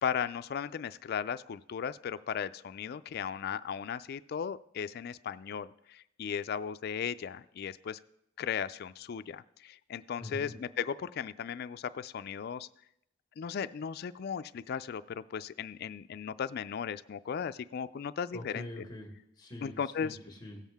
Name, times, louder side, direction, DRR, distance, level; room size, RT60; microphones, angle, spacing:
voice 1, 0.0-8.0 8.4-12.7 13.4-18.7 19.6-20.2, left 7 dB, 50° left, 13 dB, 0.3 m, -36 dB
voice 2, 10.2-10.5 18.3-20.6, left 1 dB, 20° left, 2 dB, 1.6 m, -44 dB
17.0 x 7.4 x 3.5 m, 0.80 s
head